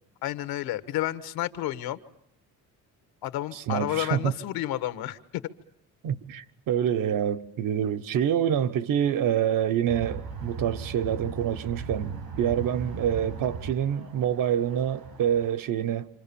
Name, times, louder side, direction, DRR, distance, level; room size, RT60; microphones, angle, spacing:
voice 1, 0.2-2.0 3.2-5.4, left 14 dB, 85° left, 1.4 m, -31 dB
voice 2, 3.5-4.3 6.0-16.1, right 9 dB, 65° right, 1.3 m, -26 dB
sound 1, 9.9-15.5, right 4 dB, 80° right, 6.8 m, -38 dB
27.5 x 27.0 x 7.1 m
cardioid pair, 145°, 35 cm